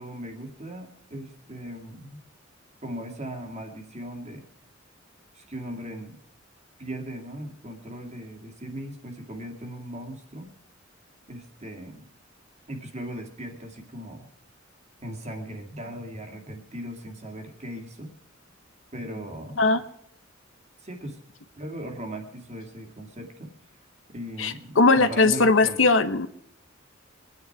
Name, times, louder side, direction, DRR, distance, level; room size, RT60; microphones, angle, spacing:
voice 1, 0.0-2.2 2.8-4.5 5.3-6.2 6.8-10.5 11.3-12.0 12.7-14.3 15.0-18.1 18.9-19.8 20.8-21.2 21.6-23.5 24.1-25.9, right 1 dB, 35° right, 3 dB, 2.5 m, -38 dB
voice 2, 24.4-26.3, left 3 dB, 70° left, 11 dB, 1.0 m, -19 dB
22.5 x 9.9 x 4.7 m, 0.71 s
head